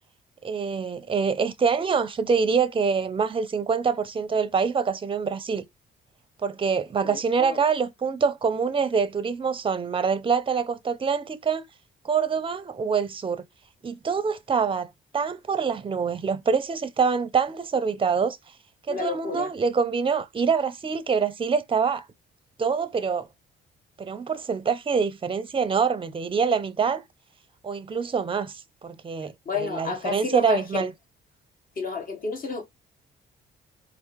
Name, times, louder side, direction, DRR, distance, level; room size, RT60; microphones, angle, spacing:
voice 1, 0.4-5.6 6.4-11.6 12.0-13.4 13.8-18.4 18.9-22.0 22.6-23.3 24.0-27.0 27.6-30.9, right 5 dB, 25° right, 0.6 m, -25 dB
voice 2, 7.0-7.6 18.9-19.5 29.4-30.9 31.8-32.6, left 5 dB, 45° left, 1.4 m, -31 dB
4.5 x 2.0 x 4.5 m
cardioid pair, 90°, 20 cm